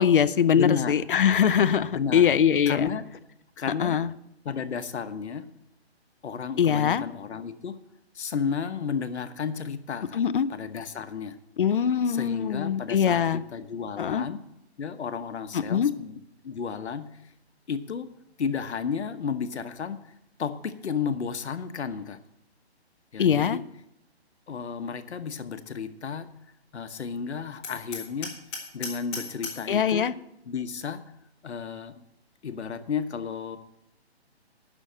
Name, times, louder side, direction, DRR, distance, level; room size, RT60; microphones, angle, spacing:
voice 1, 0.0-2.9 3.8-4.1 6.6-7.1 10.1-10.5 11.6-13.4 14.0-14.3 15.5-15.9 23.2-23.6 29.7-30.1, left 8 dB, 50° left, 14 dB, 0.5 m, -22 dB
voice 2, 0.5-0.9 1.9-2.3 2.7-3.1 3.6-4.0 4.4-5.5 6.2-7.8 8.1-10.2 10.5-11.4 12.1-14.4 14.8-17.2 17.7-18.1 18.4-20.0 20.4-22.2 23.1-23.6 24.5-26.3 26.7-28.3 28.7-30.1 30.5-31.0 31.4-32.0 32.4-33.6, left 6 dB, 80° left, 10 dB, 1.1 m, -32 dB
Hammer, 27.6-29.7, left 4 dB, 5° left, 0.7 m, -37 dB
9.9 x 6.3 x 7.5 m, 0.82 s
hypercardioid pair, 170°, 33 cm